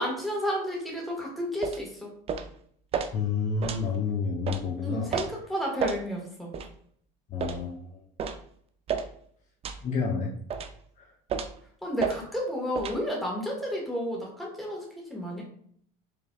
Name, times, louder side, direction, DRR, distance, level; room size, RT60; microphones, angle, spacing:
voice 1, 0.0-2.1 4.8-6.5 11.8-14.8 15.1-15.4, equal, ahead, -3 dB, 1.5 m, -31 dB
sound 1, 1.6-1.8 2.3-2.5 2.9-3.1 3.6-3.8 4.5-4.6 5.1-5.3 5.8-6.0 6.5-6.7 7.4-7.6 8.2-8.4 8.9-9.1 9.6-9.8 10.5-10.8 11.3-11.6 12.0-12.2 12.8-13.0, right 6 dB, 30° right, 0.4 m, -31 dB
voice 2, 3.1-5.1 7.3-7.8 9.8-10.3 11.0-11.1, left 5 dB, 35° left, 0 dB, 0.7 m, -29 dB
5.0 x 3.2 x 2.3 m, 0.62 s
supercardioid pair, 110°, 21 cm